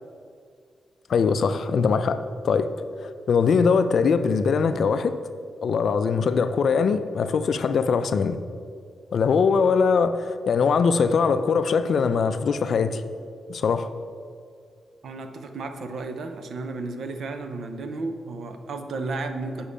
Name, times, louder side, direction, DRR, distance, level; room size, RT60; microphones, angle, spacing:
voice 1, 1.1-2.2 2.4-2.7 3.0-5.2 5.6-8.4 9.1-13.0 13.5-13.9, left 5 dB, 60° left, 11 dB, 0.4 m, -22 dB
voice 2, 15.0-19.7, right 3 dB, 65° right, 7 dB, 0.6 m, -33 dB
7.0 x 5.4 x 5.0 m, 2.3 s
wide cardioid pair, 125°, 0 cm